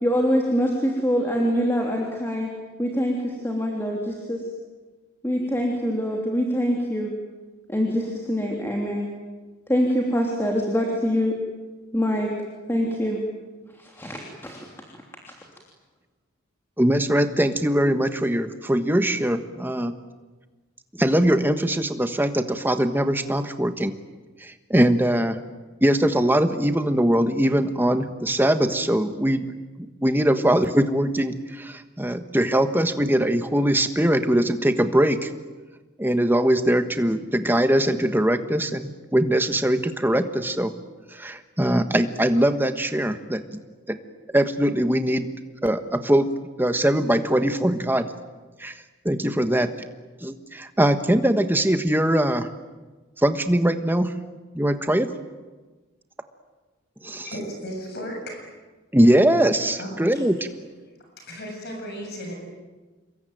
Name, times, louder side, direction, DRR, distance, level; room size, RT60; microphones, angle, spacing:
voice 1, 0.0-2.5 2.8-4.4 5.2-7.1 7.7-9.1 9.7-11.4 11.9-12.3 12.7-13.2 13.8-14.7, equal, 10° left, 0 dB, 3.2 m, -24 dB
voice 2, 16.8-19.9 21.0-23.9 24.4-25.4 25.8-29.5 30.0-35.3 36.0-40.7 41.1-43.4 43.9-44.0 44.3-45.3 45.6-46.3 46.6-48.1 48.6-48.7 49.0-49.7 50.2-52.5 53.2-54.1 54.5-55.1 57.0-57.3 58.9-60.4, right 1 dB, 10° right, 8 dB, 1.3 m, -21 dB
voice 3, 57.2-58.4 59.8-60.3 61.2-62.3, equal, 50° left, 2 dB, 7.6 m, -35 dB
28.0 x 22.5 x 9.3 m, 1.3 s
head